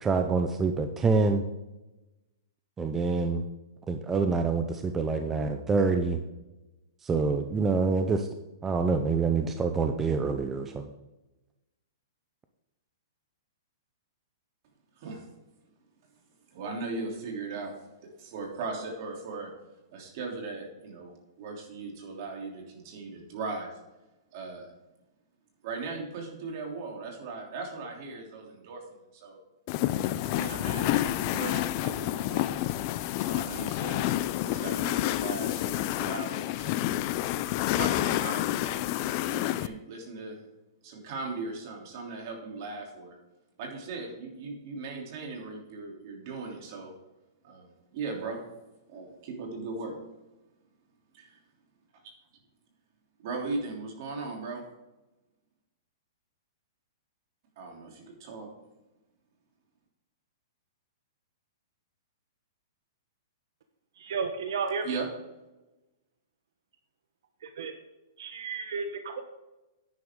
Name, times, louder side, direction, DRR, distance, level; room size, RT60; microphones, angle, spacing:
voice 1, 0.0-1.4 2.8-3.4 3.9-6.2 7.0-8.3 8.6-10.9, right 4 dB, 10° right, 6 dB, 0.6 m, -26 dB
voice 2, 16.5-17.7 18.2-19.5 19.9-23.7 24.3-24.7 25.6-29.4 30.2-32.8 33.1-34.0 34.5-36.8 37.7-38.8 39.2-40.4 40.8-43.2 43.6-46.9 47.4-48.4 48.9-50.0 51.1-51.4 53.2-54.6 57.6-58.5 64.8-65.1, right 3 dB, 45° right, 0 dB, 3.2 m, -38 dB
sound 1, 29.7-39.7, left 14 dB, 35° left, 0.5 m, -29 dB
voice 3, 64.0-64.9 67.6-67.7 68.2-69.2, right 5 dB, 70° right, 7 dB, 1.1 m, -32 dB
10.5 x 9.6 x 3.7 m, 1.0 s
hypercardioid pair, 160°, 2 cm